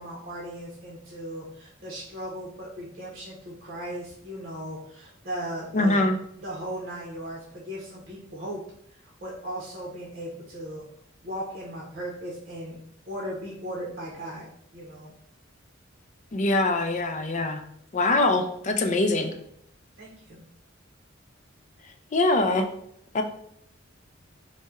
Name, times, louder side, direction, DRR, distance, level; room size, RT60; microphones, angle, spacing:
voice 1, 0.0-6.1 6.4-8.6 8.9-10.8 11.2-12.8 13.1-14.5 14.7-15.1 20.0-20.5, equal, 45° right, -4 dB, 0.8 m, -37 dB
voice 2, 5.7-6.2 16.3-17.6 17.9-19.3 22.1-22.7 23.1-23.2, left 2 dB, 35° left, 6 dB, 0.4 m, -23 dB
4.1 x 2.1 x 3.5 m, 0.70 s
head